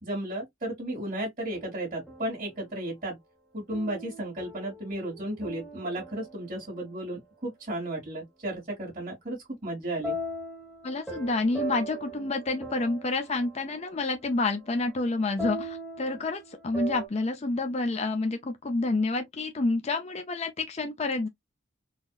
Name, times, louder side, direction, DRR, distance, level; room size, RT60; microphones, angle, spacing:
voice 1, 0.0-3.2 3.5-10.2, right 1 dB, 35° right, 2.1 m, -34 dB
sound 1, 1.4-2.6 3.7-6.9 10.0-17.1, right 1 dB, ahead, 1.3 m, -40 dB
voice 2, 10.8-21.3, left 3 dB, 30° left, 0.5 m, -29 dB
4.0 x 2.8 x 2.3 m
head